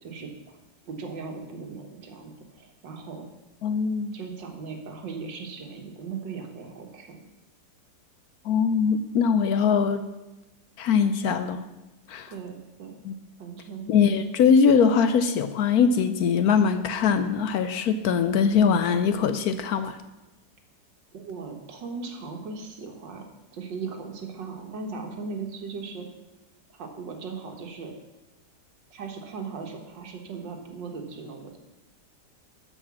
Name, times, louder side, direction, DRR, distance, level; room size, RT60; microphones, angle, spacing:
voice 1, 0.0-0.3 0.9-3.3 4.1-7.2 12.3-13.0 13.4-13.9 21.1-23.3 23.5-26.1 26.7-27.9 28.9-31.6, right 4 dB, 85° right, 3 dB, 2.0 m, -38 dB
voice 2, 3.6-4.2 8.4-10.0 10.8-11.6 12.1-12.3 13.0-13.1 13.9-20.0, left 6 dB, 70° left, 10 dB, 1.0 m, -22 dB
8.0 x 6.8 x 7.2 m, 1.0 s
omnidirectional pair, 1.9 m